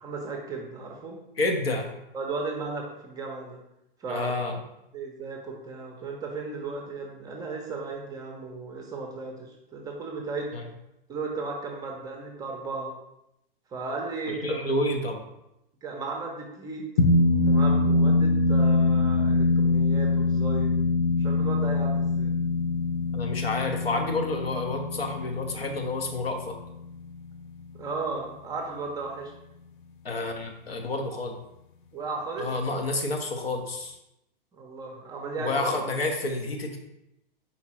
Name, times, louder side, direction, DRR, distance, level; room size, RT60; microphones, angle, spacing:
voice 1, 0.0-1.2 2.1-3.6 4.0-4.3 4.9-10.5 11.1-12.9 13.7-14.6 15.8-16.9 17.4-20.8 21.2-22.3 27.7-29.3 31.9-32.5 34.5-35.6, right 3 dB, 15° right, 1 dB, 0.5 m, -35 dB
voice 2, 1.4-1.9 4.1-4.6 10.5-10.6 14.4-15.2 23.1-26.6 30.0-31.4 32.4-34.0 35.4-36.8, left 2 dB, 85° left, 3 dB, 0.7 m, -29 dB
sound 1, 17.0-27.7, left 3 dB, 55° left, 0.5 m, -24 dB
4.2 x 3.6 x 2.9 m, 0.87 s
figure-of-eight pair, 110°, 29 cm